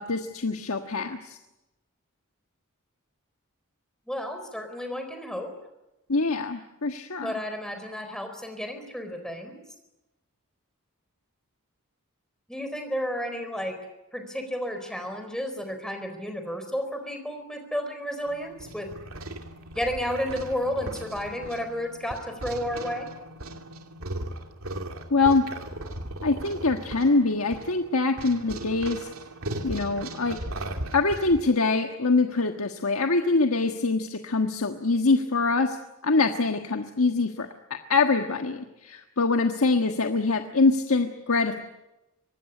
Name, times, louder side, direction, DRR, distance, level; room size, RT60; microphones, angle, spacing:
voice 1, 0.0-1.4 6.1-7.3 25.1-25.5 26.2-29.1 29.6-30.4 30.9-35.8 36.0-37.5 37.9-41.6, left 3 dB, 80° left, 5 dB, 1.5 m, -24 dB
voice 2, 4.1-5.5 7.2-9.6 12.5-13.8 14.1-18.9 19.7-23.1, equal, 5° left, 6 dB, 4.2 m, -32 dB
sound 1, 18.3-31.4, right 1 dB, 75° right, 2.6 m, -37 dB
24.5 x 20.0 x 9.9 m, 0.97 s
head